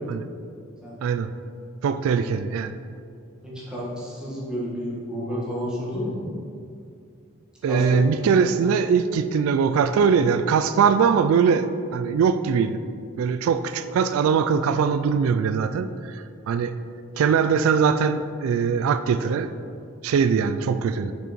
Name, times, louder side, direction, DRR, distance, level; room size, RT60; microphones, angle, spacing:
voice 1, 1.8-2.7 7.6-12.8 13.2-16.7 17.2-19.5 20.0-21.1, right 6 dB, 85° right, 13 dB, 0.3 m, -21 dB
voice 2, 3.4-6.2 7.7-7.8, equal, 5° right, -8 dB, 1.6 m, -31 dB
6.2 x 5.5 x 4.4 m, 2.4 s
head